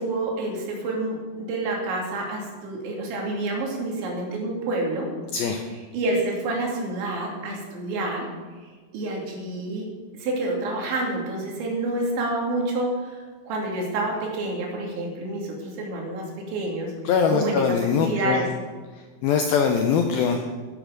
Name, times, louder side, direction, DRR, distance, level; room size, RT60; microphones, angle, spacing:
voice 1, 0.0-5.1 5.7-8.3 8.9-9.9 10.1-16.9 17.3-18.5, right 2 dB, 80° right, -1 dB, 4.9 m, -28 dB
voice 2, 5.3-5.6 17.1-18.5 19.2-20.5, left 6 dB, 85° left, 4 dB, 2.1 m, -22 dB
13.0 x 10.0 x 6.6 m, 1.4 s
omnidirectional pair, 5.2 m